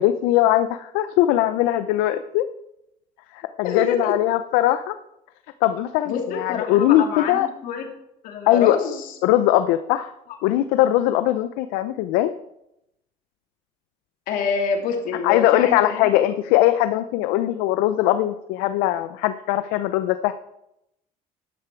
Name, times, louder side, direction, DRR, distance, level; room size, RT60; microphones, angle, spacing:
voice 1, 0.0-2.5 3.3-4.9 5.6-7.5 8.5-8.8 9.2-10.1 10.4-12.3 15.2-20.3, left 13 dB, 90° left, 10 dB, 0.6 m, -20 dB
voice 2, 3.6-4.1 6.1-7.9 8.2-9.1 14.3-16.1, left 6 dB, 70° left, 3 dB, 2.7 m, -26 dB
11.5 x 10.5 x 4.6 m, 0.81 s
supercardioid pair, 95°, 14 cm